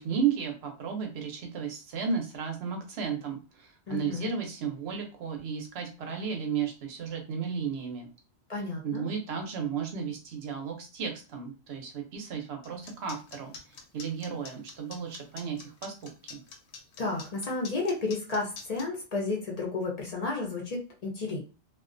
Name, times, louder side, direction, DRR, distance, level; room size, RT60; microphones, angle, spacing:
voice 1, 0.0-8.1 8.8-13.5 13.9-15.9 16.3-16.4, right 6 dB, 65° right, 3 dB, 0.9 m, -33 dB
voice 2, 3.9-4.3 8.5-9.1 17.0-21.4, left 3 dB, 45° left, 0 dB, 0.5 m, -32 dB
sound 1, 12.6-18.8, left 5 dB, 70° left, 0.8 m, -45 dB
2.4 x 2.2 x 2.4 m, 0.34 s
omnidirectional pair, 1.2 m